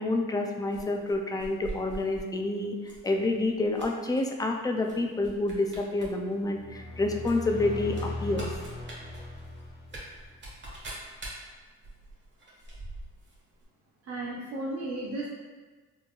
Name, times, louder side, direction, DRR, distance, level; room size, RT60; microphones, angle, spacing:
voice 1, 0.0-2.8 3.0-8.5, left 2 dB, 10° left, 2 dB, 0.4 m, -28 dB
sound 1, 0.7-2.3 2.8-3.1 3.4-4.2 4.8-5.0 5.2-6.1 6.4-6.5 7.2-13.4 13.6-13.7, right 2 dB, 40° right, 1.3 m, -43 dB
sound 2, 6.5-10.4, left 2 dB, 60° left, 1.2 m, -38 dB
voice 2, 14.1-15.3, right 2 dB, 55° right, -6 dB, 0.8 m, -34 dB
4.2 x 3.1 x 2.3 m, 1.4 s
cardioid pair, 90°, 30 cm